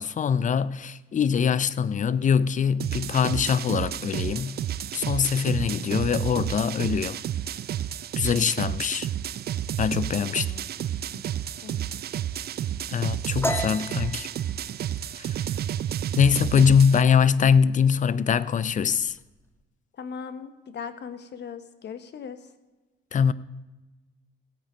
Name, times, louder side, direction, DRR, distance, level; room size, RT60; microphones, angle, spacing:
voice 1, 0.0-4.6 4.9-7.2 8.2-9.1 9.8-10.5 12.9-14.3 15.2-15.4 16.2-19.2 23.1-23.3, left 7 dB, 40° left, 0.6 m, -23 dB
sound 1, 2.8-17.0, right 11 dB, 55° right, 0.5 m, -31 dB
voice 2, 10.2-10.6 10.9-11.2 11.6-11.9 20.0-22.4, left 6 dB, 60° left, 1.2 m, -39 dB
sound 2, 13.4-16.9 17.2-17.5 17.9-18.4 18.7-19.4, left 1 dB, 10° left, 1.3 m, -34 dB
17.0 x 8.8 x 5.1 m
cardioid pair, 90°, 20 cm